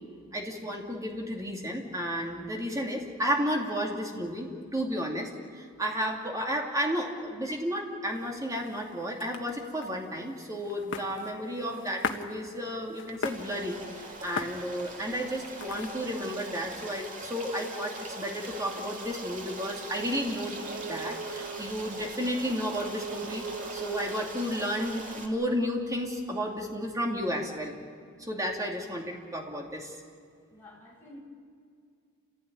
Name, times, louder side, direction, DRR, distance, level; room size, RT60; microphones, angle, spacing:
voice 1, 0.3-5.3 5.6-13.8 14.2-20.6 20.9-23.5 23.7-27.8 28.2-30.0, equal, 15° right, 0 dB, 2.8 m, -32 dB
sound 1, 8.1-16.2, left 4 dB, 55° left, 1.3 m, -40 dB
Stream, 13.3-25.3, right 2 dB, 35° right, 2.7 m, -42 dB
sound 2, 18.9-24.3, right 4 dB, 70° right, 3.0 m, -42 dB
voice 2, 30.5-31.2, left 1 dB, 10° left, -4 dB, 7.0 m, -50 dB
29.0 x 16.0 x 9.7 m, 2.3 s
head